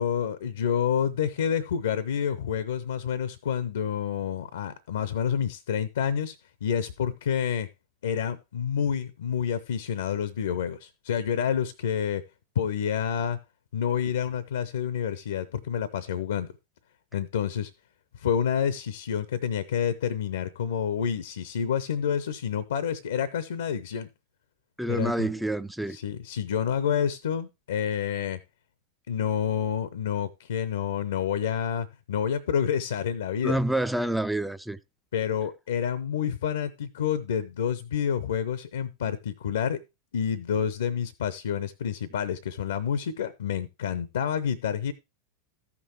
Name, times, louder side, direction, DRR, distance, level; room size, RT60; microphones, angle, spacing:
voice 1, 0.0-6.4 6.6-7.7 8.0-12.2 12.6-13.4 13.7-16.5 17.1-17.7 18.1-24.1 24.9-25.3 25.9-28.4 29.1-33.6 35.1-39.8 40.1-44.9, left 8 dB, 65° left, 0.6 m, -28 dB
voice 2, 24.8-26.0 33.4-34.8, right 1 dB, ahead, 0.4 m, -27 dB
14.0 x 6.0 x 3.0 m
figure-of-eight pair, 90°, 0 cm